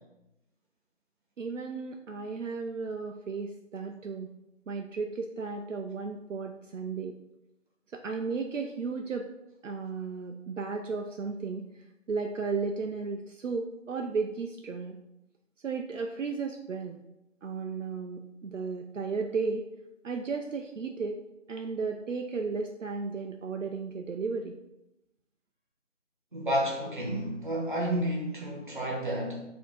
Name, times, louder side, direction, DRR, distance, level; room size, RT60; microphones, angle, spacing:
voice 1, 1.4-4.3 4.7-7.1 7.9-9.3 9.6-15.0 15.6-17.0 17.4-19.6 20.0-21.2 21.5-24.6, right 4 dB, 75° right, 3 dB, 0.5 m, -34 dB
voice 2, 26.3-29.4, equal, 40° right, -2 dB, 1.0 m, -31 dB
4.2 x 2.8 x 3.9 m, 0.90 s
figure-of-eight pair, 175°, 38 cm